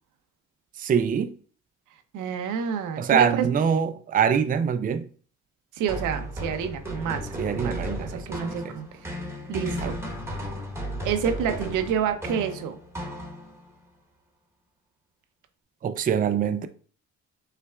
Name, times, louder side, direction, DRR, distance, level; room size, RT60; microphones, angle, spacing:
voice 1, 0.8-1.3 3.0-5.1 7.4-8.8 9.8-9.9 15.8-16.7, right 7 dB, 30° right, 0.4 m, -24 dB
voice 2, 2.1-3.5 5.7-7.8 8.1-9.1 9.5-10.0 11.0-12.8, right 8 dB, 90° right, 0.7 m, -28 dB
sound 1, 5.9-13.7, equal, 10° right, 1.1 m, -34 dB
5.6 x 3.4 x 2.3 m
cardioid pair, 90°, 30 cm